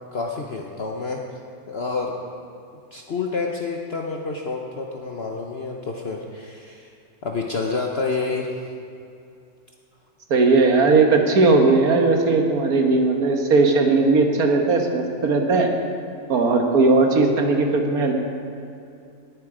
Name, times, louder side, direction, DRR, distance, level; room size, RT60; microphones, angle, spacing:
voice 1, 0.1-1.2 1.7-2.1 2.9-6.9 7.2-8.5, left 4 dB, 50° left, 0 dB, 1.1 m, -28 dB
voice 2, 10.3-15.7 16.3-18.1, right 3 dB, 80° right, 3 dB, 1.8 m, -18 dB
18.5 x 8.1 x 5.0 m, 2.6 s
omnidirectional pair, 1.6 m